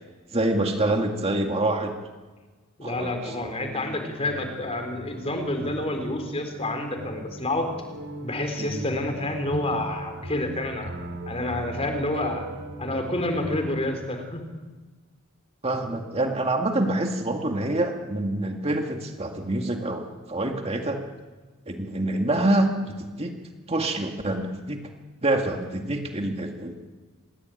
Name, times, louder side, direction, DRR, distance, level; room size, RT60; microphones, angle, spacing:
voice 1, 0.3-1.9 2.8-3.5 8.6-8.9 15.6-21.0 21.7-23.3 23.7-24.8 25.2-26.8, right 1 dB, 25° right, 3 dB, 2.1 m, -26 dB
voice 2, 2.8-7.7 8.2-10.9 11.3-12.5 12.8-14.4, left 1 dB, 25° left, 6 dB, 4.0 m, -29 dB
sound 1, 3.1-13.7, right 1 dB, 50° right, 4.3 m, -38 dB
26.5 x 21.0 x 9.2 m, 1.3 s
head